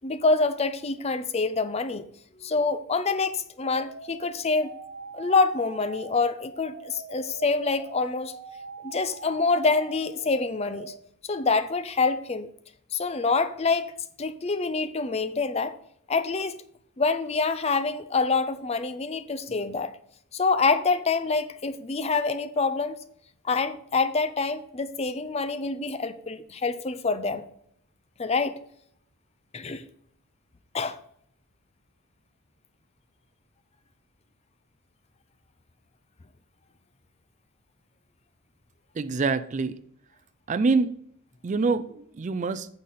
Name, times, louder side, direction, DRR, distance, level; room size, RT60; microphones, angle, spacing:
voice 1, 0.0-2.0 2.4-4.7 5.1-8.3 8.8-10.9 11.2-12.5 12.9-13.9 14.2-15.8 16.1-16.6 17.0-19.9 20.3-23.0 23.4-27.5 28.2-28.6 29.5-29.8 30.7-31.0, left 4 dB, 30° left, 0.5 m, -26 dB
sound 1, 3.6-11.0, right 4 dB, 80° right, 1.0 m, -43 dB
voice 2, 39.0-39.8 40.5-40.9 41.4-42.7, right 4 dB, 35° right, 0.4 m, -25 dB
9.1 x 6.7 x 4.1 m
head